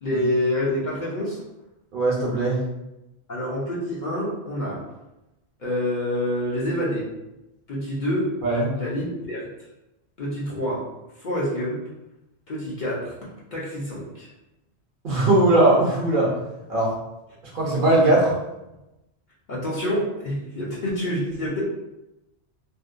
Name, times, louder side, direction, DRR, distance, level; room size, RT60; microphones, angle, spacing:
voice 1, 0.0-1.4 3.3-4.8 5.6-7.1 7.7-8.3 8.8-9.5 10.2-10.8 11.2-11.8 12.5-13.2 13.5-14.3 19.5-21.6, left 1 dB, 50° left, -6 dB, 0.7 m, -27 dB
voice 2, 1.9-2.6 8.4-8.7 15.0-16.4 16.7-16.9 17.5-18.3, right 2 dB, 55° right, -4 dB, 0.7 m, -19 dB
2.7 x 2.1 x 2.4 m, 0.94 s
omnidirectional pair, 1.1 m